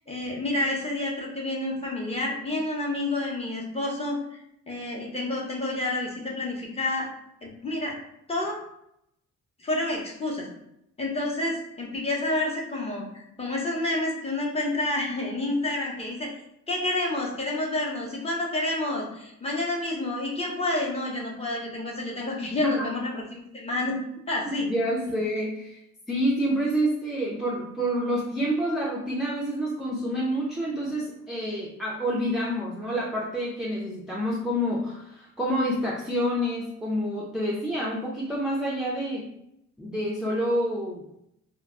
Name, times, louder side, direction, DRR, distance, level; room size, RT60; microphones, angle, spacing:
voice 1, 0.0-4.4 4.7-7.1 7.4-8.0 8.3-8.6 9.6-10.5 11.0-16.3 16.7-23.9 24.3-24.7, left 2 dB, 20° left, -2 dB, 0.7 m, -29 dB
voice 2, 24.5-25.8 26.1-39.3 39.8-41.0, equal, ahead, -5 dB, 0.4 m, -28 dB
2.2 x 2.0 x 3.6 m, 0.80 s
cardioid pair, 90°, 30 cm